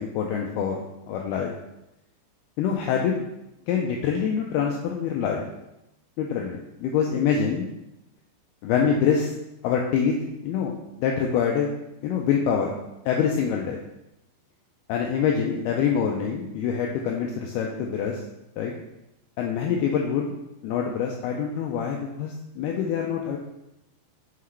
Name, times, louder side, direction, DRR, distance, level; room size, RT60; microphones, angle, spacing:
voice 1, 0.0-1.5 2.6-3.2 3.7-5.4 6.2-7.7 8.6-9.3 9.6-10.1 10.4-10.7 11.0-11.7 12.0-12.7 13.1-13.8 14.9-18.2 18.6-18.7 19.4-20.3 20.6-23.4, left 7 dB, 85° left, 0 dB, 2.2 m, -25 dB
6.6 x 5.7 x 3.2 m, 0.91 s
omnidirectional pair, 5.1 m